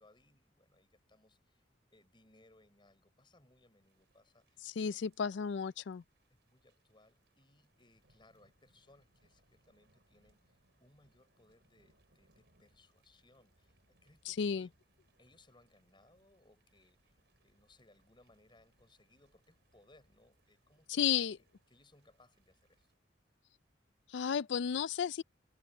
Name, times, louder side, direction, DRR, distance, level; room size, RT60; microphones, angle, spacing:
voice 1, 0.0-5.1 6.3-14.8 15.2-21.1 21.4-22.9, left 2 dB, 25° left, 6.4 m, -67 dB
Thunder / Rain, 3.8-23.0, right 1 dB, 60° right, 6.9 m, -75 dB
voice 2, 4.6-6.0 14.3-14.7 20.9-21.4 24.1-25.2, left 7 dB, 65° left, 0.4 m, -33 dB
head